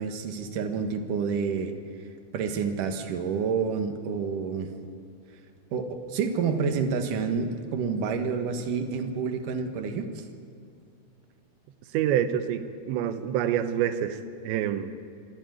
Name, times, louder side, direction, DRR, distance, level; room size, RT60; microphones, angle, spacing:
voice 1, 0.0-1.7 2.3-4.7 5.7-10.2, right 5 dB, 60° right, 5 dB, 2.5 m, -29 dB
voice 2, 11.9-14.9, right 10 dB, 90° right, 10 dB, 3.3 m, -27 dB
24.5 x 14.5 x 9.2 m, 2.3 s
omnidirectional pair, 5.0 m